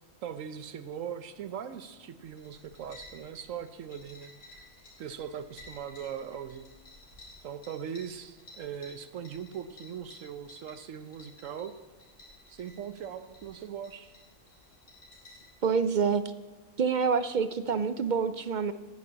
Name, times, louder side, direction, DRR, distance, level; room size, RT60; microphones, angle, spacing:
voice 1, 0.2-4.3 5.0-6.7 7.4-11.7 12.5-14.1, right 8 dB, 80° right, 11 dB, 1.1 m, -40 dB
sound 1, 2.2-15.5, left 2 dB, 75° left, 4.6 m, -54 dB
voice 2, 15.6-16.3 16.8-18.7, right 6 dB, 65° right, 13 dB, 0.4 m, -27 dB
11.0 x 9.6 x 8.4 m, 1.2 s
omnidirectional pair, 1.3 m